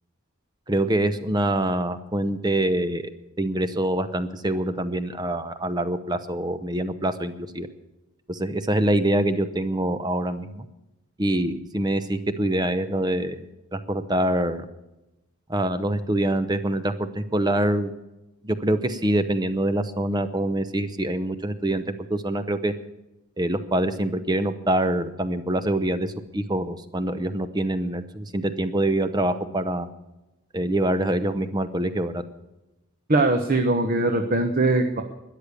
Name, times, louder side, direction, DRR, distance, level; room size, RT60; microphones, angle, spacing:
voice 1, 0.7-3.1 3.4-7.7 8.3-10.6 11.2-14.6 15.5-17.9 18.4-21.8 22.1-22.7 23.4-29.9 30.5-32.2, right 1 dB, 20° right, 11 dB, 0.7 m, -25 dB
voice 2, 33.1-35.0, right 2 dB, 40° right, 5 dB, 1.1 m, -21 dB
13.0 x 10.0 x 8.3 m, 0.97 s
head